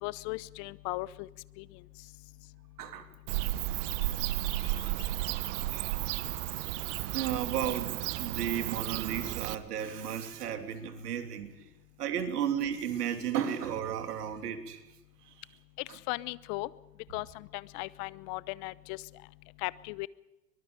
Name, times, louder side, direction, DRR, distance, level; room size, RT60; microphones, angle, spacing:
voice 1, 0.0-1.3 1.6-1.7 16.1-16.7 17.1-19.0 19.6-20.1, left 22 dB, 35° left, 20 dB, 0.8 m, -37 dB
voice 2, 2.8-3.1 5.3-5.9 7.1-11.6 12.0-14.8 15.2-15.5 15.9-16.0, right 9 dB, 70° right, 7 dB, 3.2 m, -34 dB
Bird / Cricket, 3.3-9.6, right 16 dB, 45° right, 1.1 m, -33 dB
23.0 x 22.0 x 5.2 m, 0.98 s
hypercardioid pair, 115°, 49 cm